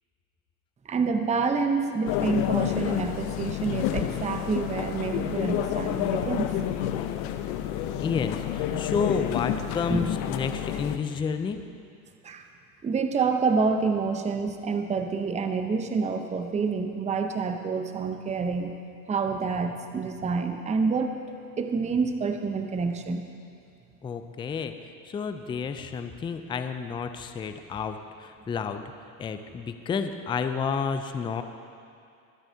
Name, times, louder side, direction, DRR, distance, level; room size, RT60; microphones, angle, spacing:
voice 1, 0.9-6.5 9.9-10.1 12.2-12.4 12.8-18.7 19.1-21.2 21.6-23.3, right 4 dB, 15° right, 6 dB, 0.8 m, -27 dB
sound 1, 2.1-11.0, left 11 dB, 55° left, 0.9 m, -29 dB
voice 2, 7.9-11.6 24.0-28.8 29.2-31.4, left 6 dB, 10° left, 8 dB, 0.4 m, -31 dB
24.5 x 8.9 x 2.8 m, 2.5 s
hypercardioid pair, 95°, 48 cm